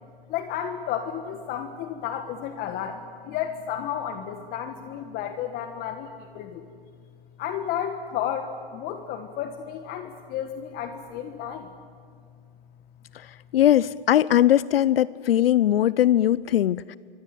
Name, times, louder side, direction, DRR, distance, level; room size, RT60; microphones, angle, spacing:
voice 1, 0.3-6.7 7.4-11.7, left 9 dB, 30° left, 8 dB, 1.6 m, -32 dB
voice 2, 13.5-17.0, left 12 dB, 75° left, 20 dB, 0.7 m, -20 dB
25.5 x 23.5 x 9.2 m, 2.1 s
hypercardioid pair, 135°, 30 cm